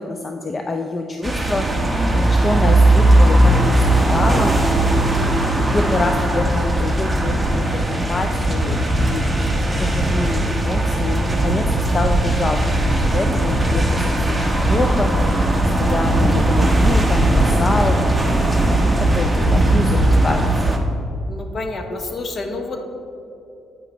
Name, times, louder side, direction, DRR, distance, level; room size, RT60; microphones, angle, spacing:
voice 1, 0.0-1.7 2.1-4.6 5.6-9.3 9.7-11.6 11.9-12.6 12.8-18.2 18.8-20.8, left 2 dB, 30° left, 4 dB, 0.4 m, -26 dB
sound 1, 1.2-20.8, right 1 dB, 10° right, 0.9 m, -18 dB
voice 2, 21.3-22.8, left 2 dB, 50° left, 4 dB, 0.9 m, -29 dB
8.1 x 5.8 x 2.9 m, 2.7 s
cardioid pair, 90°, 0 cm